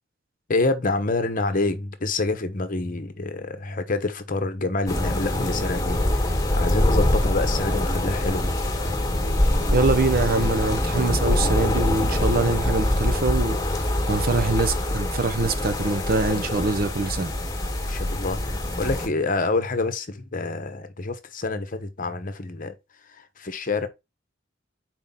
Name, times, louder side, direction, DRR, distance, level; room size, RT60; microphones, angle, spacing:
voice 1, 0.5-8.4 17.9-22.7 23.1-23.9, left 3 dB, 45° left, 0.9 m, -27 dB
sound 1, 4.9-19.1, left 1 dB, 20° left, 1.4 m, -24 dB
voice 2, 9.7-17.3, right 3 dB, 50° right, 0.7 m, -24 dB
4.5 x 3.7 x 5.6 m
head